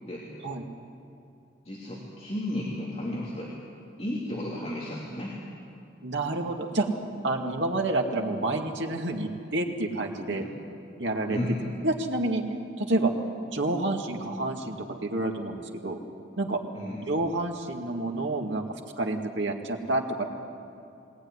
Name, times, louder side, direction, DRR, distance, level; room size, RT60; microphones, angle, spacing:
voice 1, 1.6-3.5 4.0-5.4 10.3-10.5 11.3-11.6 16.7-17.0, left 1 dB, 35° left, -6 dB, 3.1 m, -33 dB
voice 2, 6.0-6.9 7.2-10.4 11.0-11.4 11.8-12.4 12.8-13.1 13.5-16.0 16.4-16.6 17.1-18.6 19.0-20.2, right 2 dB, 90° right, 2 dB, 2.2 m, -28 dB
20.5 x 18.5 x 9.7 m, 2.6 s
head